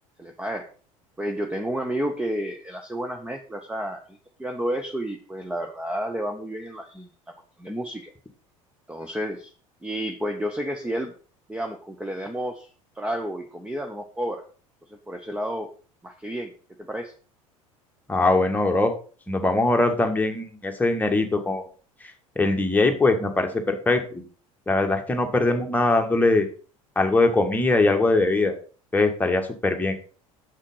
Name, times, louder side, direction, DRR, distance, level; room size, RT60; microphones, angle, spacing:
voice 1, 0.2-0.7 1.2-7.1 7.6-8.1 8.9-9.5 9.8-11.1 11.5-12.7 12.9-14.4 14.9-15.7 16.0-16.5 16.9-17.1, equal, 5° right, 4 dB, 1.0 m, -31 dB
voice 2, 18.1-18.9 19.3-21.6 22.3-24.2 24.7-26.5 26.9-28.5 28.9-29.9, left 2 dB, 10° left, 3 dB, 1.7 m, -21 dB
7.5 x 6.3 x 5.5 m, 0.39 s
figure-of-eight pair, 70°, 18 cm